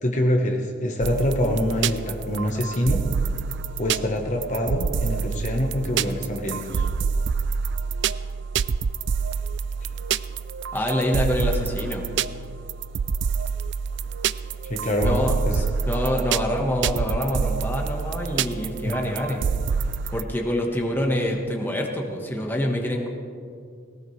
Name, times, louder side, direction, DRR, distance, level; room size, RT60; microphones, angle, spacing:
voice 1, 0.0-3.0 3.8-6.9 9.8-9.9 14.6-15.2 15.4-15.6 18.8-18.9, left 1 dB, 35° left, 2 dB, 1.1 m, -25 dB
sound 1, 1.0-20.2, right 6 dB, 55° right, 0.3 m, -27 dB
voice 2, 10.7-12.1 15.0-19.5 20.1-23.1, left 1 dB, 10° left, 1 dB, 1.3 m, -26 dB
18.5 x 18.0 x 3.3 m, 2.3 s
head